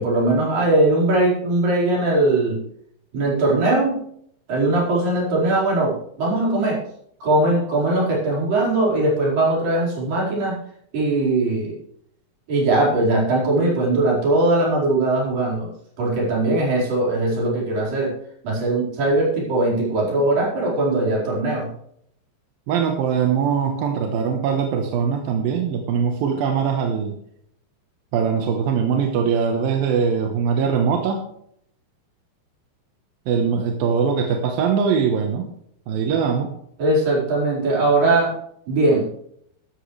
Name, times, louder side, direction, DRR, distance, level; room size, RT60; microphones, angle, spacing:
voice 1, 0.0-2.6 3.1-4.0 4.5-6.8 7.2-10.6 10.9-11.8 12.5-15.7 16.0-18.1 18.4-21.7 36.8-38.3 38.7-39.1, right 2 dB, 50° right, -3 dB, 6.2 m, -20 dB
voice 2, 22.7-27.2 28.1-31.3 33.3-35.5 35.9-36.5, right 6 dB, 65° right, 3 dB, 2.6 m, -21 dB
13.5 x 13.0 x 3.3 m, 0.68 s
omnidirectional pair, 5.1 m